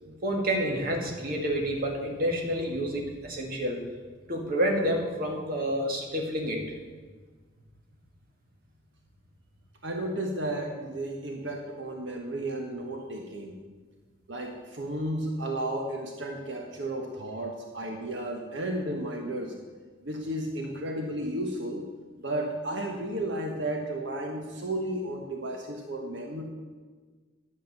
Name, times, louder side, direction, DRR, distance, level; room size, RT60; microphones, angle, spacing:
voice 1, 0.2-3.8 4.3-6.6, equal, 45° right, 0 dB, 2.0 m, -29 dB
voice 2, 9.8-13.6 14.3-19.6 20.0-21.9 22.2-26.4, right 1 dB, 65° right, 2 dB, 1.2 m, -33 dB
10.5 x 7.7 x 6.7 m, 1.4 s
head